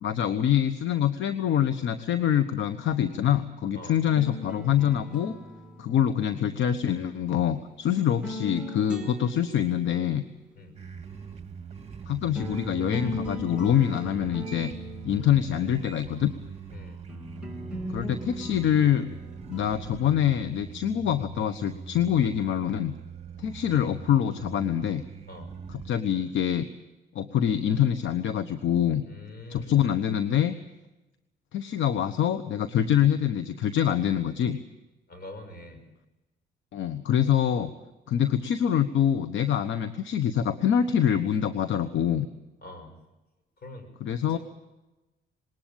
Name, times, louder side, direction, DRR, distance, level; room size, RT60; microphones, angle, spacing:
voice 1, 0.0-5.3 5.8-10.2 12.1-14.7 15.0-16.3 17.9-19.1 19.5-22.9 23.4-25.0 25.7-26.6 27.1-29.0 29.5-30.5 31.5-34.6 36.7-37.7 38.1-42.3 44.0-44.4, left 9 dB, 75° left, 10 dB, 1.1 m, -25 dB
sound 1, 4.0-7.3 8.0-10.2 11.9-12.0 12.3-16.0 17.1-22.1, left 1 dB, 5° right, 2.9 m, -40 dB
sound 2, 10.7-25.9, right 6 dB, 30° right, 1.9 m, -42 dB
voice 2, 29.0-29.8 35.1-35.8 42.6-42.9 43.6-44.4, left 2 dB, 50° left, 7 dB, 6.3 m, -44 dB
20.5 x 19.0 x 9.0 m, 1.0 s
cardioid pair, 90°, 20 cm